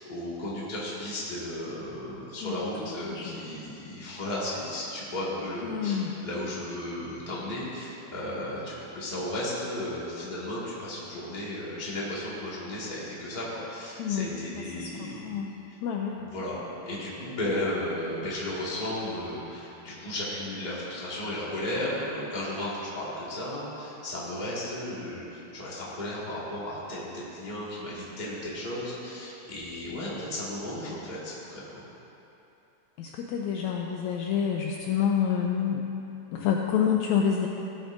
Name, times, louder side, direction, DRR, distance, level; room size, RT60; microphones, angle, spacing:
voice 1, 0.0-15.3 15.7-15.8 16.2-16.5 16.8-31.8, left 1 dB, 20° left, -8 dB, 1.5 m, -34 dB
voice 2, 3.0-3.5 5.6-6.1 14.0-15.5 15.8-16.2 33.0-35.9 36.3-37.5, left 8 dB, 80° left, 0 dB, 1.7 m, -28 dB
17.0 x 8.0 x 2.6 m, 3.0 s
omnidirectional pair, 3.6 m